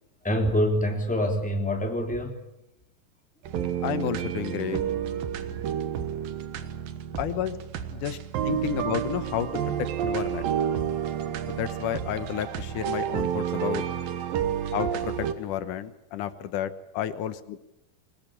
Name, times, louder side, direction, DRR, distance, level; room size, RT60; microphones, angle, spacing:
voice 1, 0.2-2.4 5.5-5.6 17.1-17.2, equal, ahead, 1 dB, 3.1 m, -26 dB
sound 1, 3.5-15.3, right 9 dB, 85° right, 3.1 m, -30 dB
voice 2, 3.8-4.8 7.2-7.6 7.9-8.2 8.4-9.5 9.8-10.5 11.5-13.8 14.7-17.6, left 10 dB, 70° left, 12 dB, 2.5 m, -31 dB
22.5 x 19.5 x 8.7 m, 0.86 s
omnidirectional pair, 4.0 m